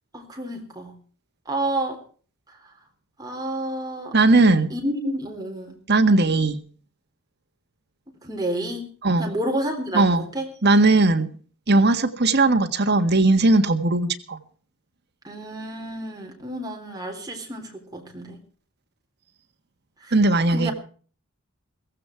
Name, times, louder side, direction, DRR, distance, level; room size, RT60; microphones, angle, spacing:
voice 1, 0.1-0.9 1.5-2.0 3.2-4.2 4.7-5.7 8.2-8.9 9.2-10.5 15.2-18.4 20.0-20.1 20.5-20.7, right 1 dB, 15° right, 1 dB, 3.8 m, -30 dB
voice 2, 4.1-4.7 5.9-6.6 9.0-9.3 9.9-10.2 10.6-11.3 11.7-14.4 20.1-20.7, right 2 dB, 50° right, 7 dB, 1.7 m, -18 dB
17.0 x 15.5 x 4.6 m, 0.42 s
head